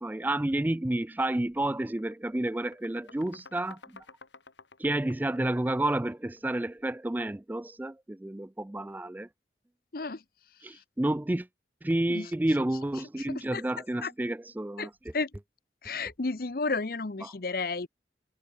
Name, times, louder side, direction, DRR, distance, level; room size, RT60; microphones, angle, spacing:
voice 1, 0.0-4.1 4.8-9.3 10.6-11.5 11.8-15.1 17.2-17.3, right 1 dB, 10° right, 0.3 m, -30 dB
sound 1, 1.0-1.2 1.5-6.5, left 4 dB, 90° left, 4.7 m, -53 dB
voice 2, 15.8-17.9, left 3 dB, 55° left, 0.8 m, -32 dB
head